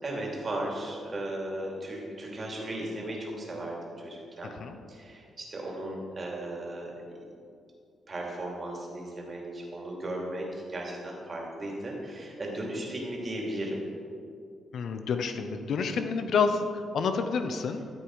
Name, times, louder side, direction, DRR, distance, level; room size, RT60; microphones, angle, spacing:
voice 1, 0.0-4.6 4.9-6.9 8.1-13.9, right 1 dB, 35° right, -2 dB, 2.9 m, -36 dB
voice 2, 14.7-17.8, left 5 dB, 70° left, 8 dB, 0.8 m, -28 dB
14.0 x 8.0 x 4.8 m, 2.4 s
cardioid pair, 100°, 0 cm